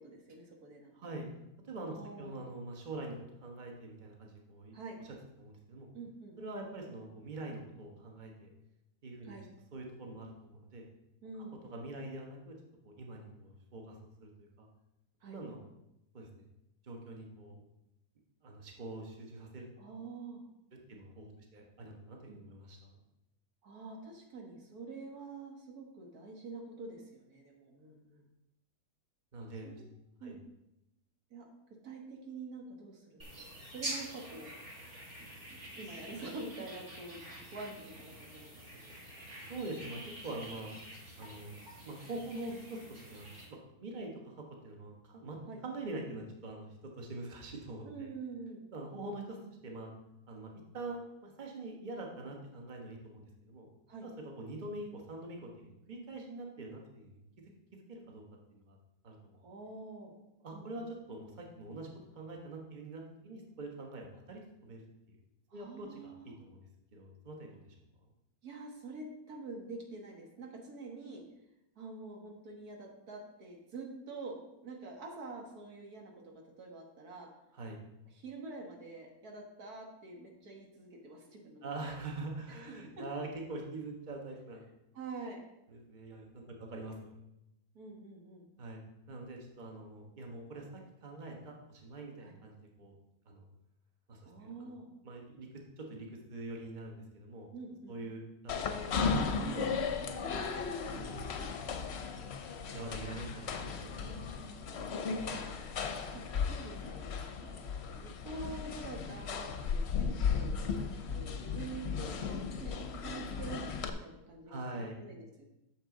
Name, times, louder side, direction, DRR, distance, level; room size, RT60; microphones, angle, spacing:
voice 1, 0.0-1.1 1.9-2.4 4.7-5.0 5.9-6.4 9.2-9.4 11.2-11.6 15.2-15.4 19.8-20.5 22.3-22.4 23.6-28.3 29.6-29.9 30.2-30.4 31.3-31.5 31.8-33.5 33.7-34.8 35.5-38.9 45.5-45.6 47.8-48.6 53.9-54.1 59.3-60.2 60.5-60.8 65.5-66.4 68.4-71.2 71.8-77.3 78.1-82.0 82.6-82.7 84.9-85.4 87.8-88.5 92.2-92.3 94.2-94.9 97.5-98.0 100.2-100.3 103.9-104.7 105.8-107.6 108.0-115.5, right 3 dB, 85° right, 1 dB, 1.9 m, -47 dB
voice 2, 0.9-1.3 1.7-4.8 5.0-5.9 6.4-8.5 9.0-9.4 9.7-10.8 11.7-12.6 12.8-14.7 15.3-15.6 16.1-16.4 16.8-17.6 18.4-19.7 20.9-23.0 29.3-29.7 30.2-30.4 39.5-40.7 41.2-48.1 48.7-49.9 50.3-53.7 54.0-57.2 57.9-58.2 58.5-58.8 59.0-59.4 60.4-65.2 65.5-66.7 66.9-67.7 77.5-77.8 81.6-84.7 85.7-87.1 88.6-88.8 89.1-93.0 93.2-93.5 94.1-94.7 95.0-97.5 97.9-99.7 100.2-100.7 100.9-101.3 101.5-101.7 102.0-102.1 102.5-104.3 114.5-115.0, right 2 dB, 35° right, 1 dB, 1.3 m, -45 dB
sound 1, 33.2-43.5, right 1 dB, 50° right, 2.2 m, -47 dB
sound 2, 98.5-113.9, left 5 dB, 55° left, 0.9 m, -36 dB
8.8 x 6.8 x 3.8 m, 0.88 s
omnidirectional pair, 1.6 m